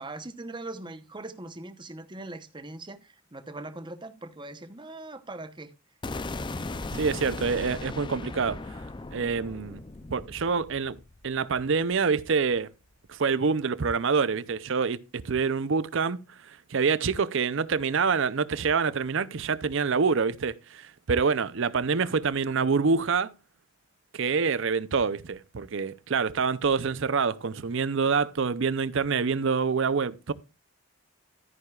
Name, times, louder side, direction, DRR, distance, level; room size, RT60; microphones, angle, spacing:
voice 1, 0.0-5.7, right 2 dB, 20° right, 0.9 m, -41 dB
sound 1, 6.0-12.1, left 2 dB, 20° left, 0.4 m, -37 dB
voice 2, 6.9-8.8 9.1-9.8 10.1-11.0 11.2-12.7 13.1-23.3 24.1-30.3, right 5 dB, 60° right, 0.6 m, -26 dB
14.0 x 9.5 x 2.4 m
head